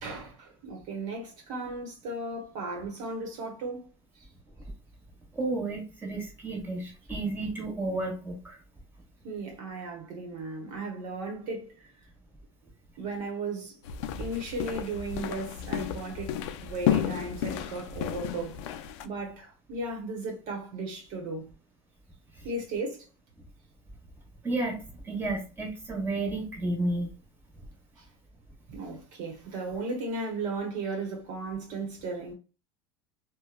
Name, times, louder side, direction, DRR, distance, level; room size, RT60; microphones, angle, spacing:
voice 1, 0.0-3.9 4.1-4.3 9.2-11.9 13.0-13.8 14.2-21.4 22.4-23.0 28.0-28.1 28.7-32.3, right 3 dB, 55° right, 1.1 m, -36 dB
voice 2, 5.3-8.6 14.1-14.2 24.4-27.1, right 2 dB, 15° right, 1.3 m, -32 dB
sound 1, 13.8-19.1, left 11 dB, 75° left, 0.4 m, -32 dB
2.8 x 2.2 x 2.4 m
supercardioid pair, 105°, 15 cm